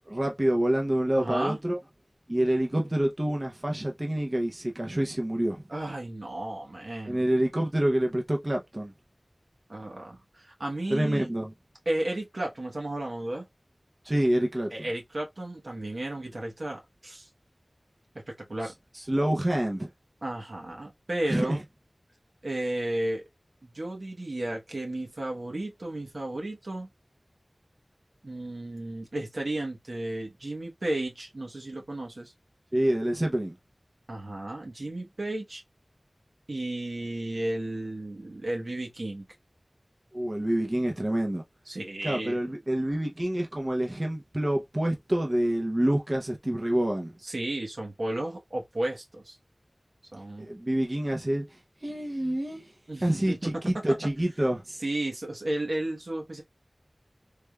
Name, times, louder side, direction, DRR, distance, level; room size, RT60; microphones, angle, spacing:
voice 1, 0.1-1.8 2.3-5.6 7.0-8.9 10.9-11.5 14.0-14.9 18.9-19.9 21.3-21.6 32.7-33.6 40.1-41.4 42.0-47.1 50.4-51.4 51.8-52.6 53.0-54.6, right 1 dB, 35° right, 0.7 m, -27 dB
voice 2, 1.2-1.6 5.7-7.2 9.7-11.3 11.9-13.5 14.7-17.3 18.3-18.7 20.2-21.6 22.4-23.2 23.6-26.9 28.2-32.3 34.1-35.6 36.5-39.3 41.7-42.4 47.2-49.4 50.1-50.5 52.9-53.5 54.8-56.4, right 1 dB, 80° right, 1.1 m, -33 dB
3.4 x 3.3 x 2.3 m
wide cardioid pair, 50°, 0 cm